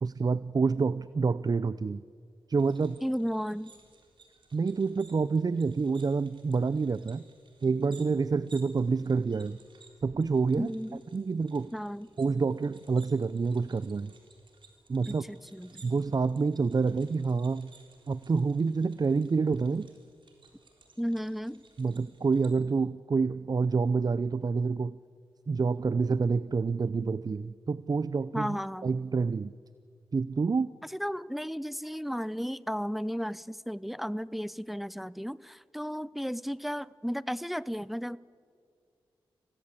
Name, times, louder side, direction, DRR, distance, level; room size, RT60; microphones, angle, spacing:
voice 1, 0.0-2.0 2.5-3.0 4.5-7.2 7.6-9.6 10.0-10.7 11.1-11.7 12.2-14.1 14.9-15.2 15.8-17.7 18.1-19.9 21.8-25.0 25.5-28.6 28.8-29.5 30.1-30.8, right 4 dB, 45° right, 17 dB, 0.6 m, -28 dB
sound 1, 2.6-22.5, right 4 dB, 60° right, 4.0 m, -59 dB
voice 2, 3.0-3.7 10.6-11.0 11.7-12.1 15.1-15.8 21.0-21.6 28.3-28.9 30.9-38.2, equal, ahead, 19 dB, 0.6 m, -34 dB
26.5 x 17.0 x 8.4 m, 2.2 s
supercardioid pair, 40°, 9 cm